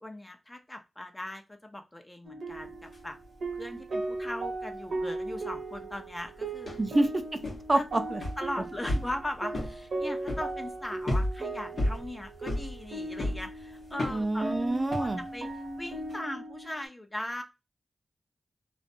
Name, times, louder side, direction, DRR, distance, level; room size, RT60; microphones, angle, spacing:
voice 1, 0.0-3.2 3.6-6.7 7.7-7.8 8.4-14.5 14.9-15.5 15.8-17.4, left 1 dB, 20° left, 5 dB, 0.7 m, -39 dB
sound 1, 2.2-16.9, right 2 dB, 75° right, 0.8 m, -37 dB
sound 2, 2.5-3.0 3.2-3.7 4.1-16.1, left 1 dB, 70° left, 1.0 m, -34 dB
voice 2, 6.8-7.4 7.7-8.2 14.1-15.2, right 2 dB, 40° right, 7 dB, 0.4 m, -27 dB
2.5 x 2.1 x 2.5 m, 0.24 s
cardioid pair, 40°, 0 cm